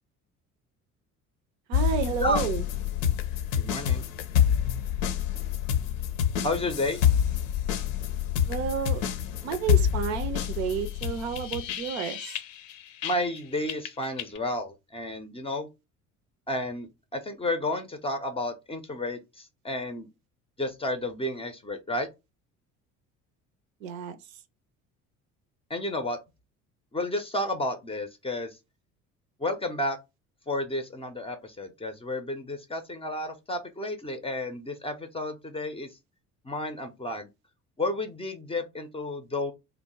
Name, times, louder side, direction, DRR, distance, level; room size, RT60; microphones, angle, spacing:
sound 1, 1.7-13.4 13.7-14.4, left 9 dB, 65° left, 0.6 m, -27 dB
voice 1, 1.7-2.6 8.5-9.0 9.4-12.2 23.8-24.1, right 8 dB, 65° right, 0.6 m, -30 dB
voice 2, 3.5-4.1 6.4-7.0 13.0-15.7 16.5-20.1 20.6-22.1 25.7-26.2 26.9-28.6 29.4-30.0 30.5-36.0 36.4-37.3 37.8-39.5, left 1 dB, 15° left, 0.5 m, -31 dB
2.8 x 2.1 x 4.1 m
figure-of-eight pair, 55°, 43 cm